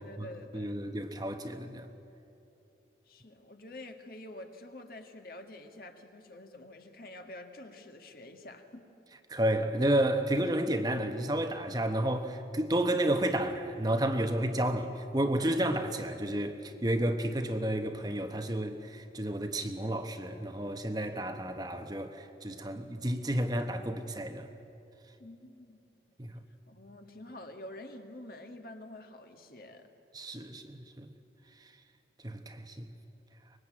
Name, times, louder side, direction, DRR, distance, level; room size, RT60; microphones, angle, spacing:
voice 1, 0.0-0.8 3.1-8.8 25.2-25.8 26.7-29.9, left 1 dB, 55° left, 1.8 m, -48 dB
voice 2, 0.5-1.9 9.3-24.5 26.2-26.4 30.1-31.1 31.6-31.7 32.2-32.9, right 1 dB, 20° right, 1.0 m, -31 dB
24.0 x 21.0 x 8.7 m
head